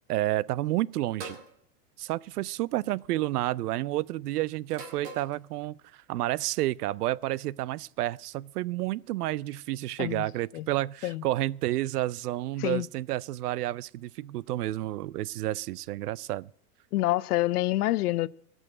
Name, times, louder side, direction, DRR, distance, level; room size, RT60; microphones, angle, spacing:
voice 1, 0.1-1.4 2.0-16.5, right 15 dB, 75° right, 0.6 m, -30 dB
sound 1, 1.2-1.5 2.7-3.1 4.7-5.4, right 4 dB, 35° right, 2.2 m, -42 dB
voice 2, 16.9-18.3, left 17 dB, 75° left, 0.6 m, -27 dB
17.0 x 6.4 x 7.7 m
supercardioid pair, 180°, 46 cm